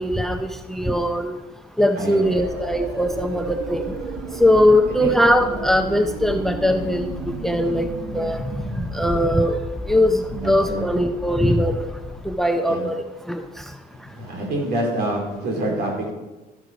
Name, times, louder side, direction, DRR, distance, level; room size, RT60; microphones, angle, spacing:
voice 1, 0.0-1.3 1.8-3.9 4.4-7.1 7.4-7.9 8.1-8.5 8.8-9.6 9.9-11.9 12.3-13.0 13.3-13.4, left 1 dB, ahead, 7 dB, 0.6 m, -20 dB
voice 2, 2.0-2.4 5.0-5.1 10.3-10.9 12.7-12.8 13.9-16.1, right 1 dB, 70° right, -1 dB, 4.2 m, -27 dB
sound 1, 2.0-9.4, right 5 dB, 90° right, 1.3 m, -34 dB
sound 2, 2.3-12.4, left 2 dB, 20° left, 2.2 m, -37 dB
12.5 x 8.1 x 5.1 m, 1.1 s
cardioid pair, 110°, 17 cm